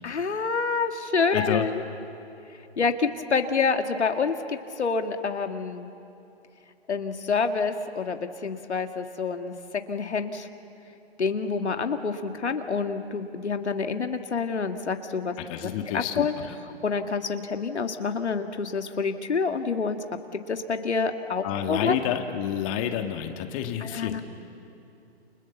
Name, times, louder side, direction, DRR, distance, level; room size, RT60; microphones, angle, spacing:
voice 1, 0.0-1.8 2.8-5.9 6.9-9.5 9.9-10.5 11.2-15.3 15.6-16.3 16.8-20.0 20.5-22.0 23.8-24.2, left 5 dB, 85° left, 6 dB, 1.8 m, -27 dB
voice 2, 1.3-1.7 15.4-16.5 21.4-24.2, left 10 dB, 30° left, 5 dB, 1.8 m, -29 dB
29.5 x 28.0 x 7.1 m, 2.7 s
hypercardioid pair, 135°, 33 cm